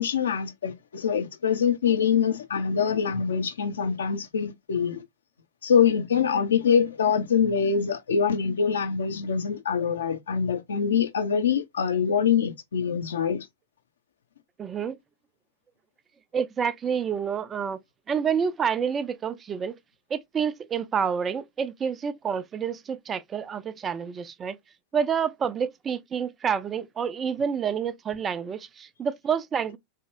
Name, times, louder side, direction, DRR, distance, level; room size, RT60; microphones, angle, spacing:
voice 1, 0.0-5.0 5.6-13.5, left 7 dB, 65° left, 0.8 m, -24 dB
voice 2, 14.6-15.0 16.3-17.8 18.1-19.7 20.1-24.6 24.9-29.8, right 7 dB, 20° right, 0.3 m, -28 dB
3.4 x 2.9 x 2.5 m
figure-of-eight pair, 90°, 0 cm